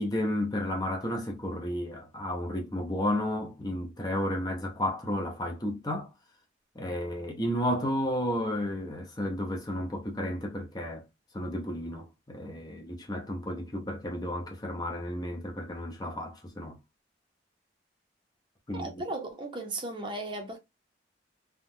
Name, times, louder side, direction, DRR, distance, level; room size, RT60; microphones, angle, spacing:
voice 1, 0.0-6.1 6.7-11.0 11.3-16.8 18.7-18.9, left 1 dB, 20° left, 0.7 m, -32 dB
voice 2, 18.7-20.6, right 2 dB, 25° right, 0.8 m, -36 dB
3.5 x 2.4 x 2.6 m
head